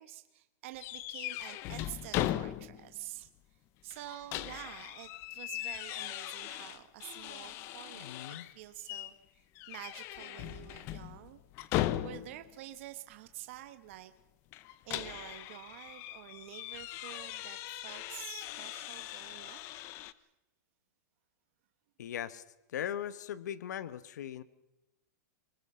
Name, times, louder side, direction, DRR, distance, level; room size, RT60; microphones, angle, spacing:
voice 1, 0.0-3.3 3.8-9.4 9.7-11.4 12.0-14.1 14.8-19.6, right 15 dB, 45° right, 9 dB, 1.2 m, -48 dB
sound 1, 0.8-3.0 3.3-3.4 3.9-8.5 8.9-9.2 9.6-12.5 14.5-20.1, left 14 dB, 25° left, 0.7 m, -39 dB
voice 2, 7.9-8.5 22.0-22.4 22.7-24.4, left 10 dB, 70° left, 16 dB, 1.2 m, -39 dB
25.5 x 20.0 x 5.6 m, 0.95 s
supercardioid pair, 170°, 10 cm